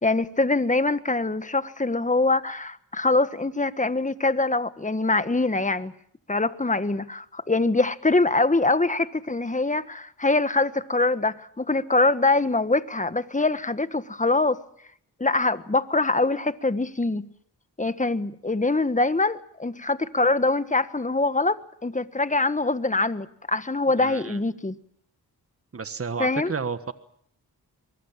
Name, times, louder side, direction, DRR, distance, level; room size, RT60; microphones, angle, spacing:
voice 1, 0.0-5.9 6.3-14.6 15.2-17.3 17.8-24.8 26.2-26.5, left 2 dB, 20° left, 1.5 m, -24 dB
voice 2, 24.0-24.4 25.7-26.9, right 5 dB, 35° right, 1.5 m, -31 dB
23.5 x 22.0 x 7.5 m
cardioid pair, 60°, 39 cm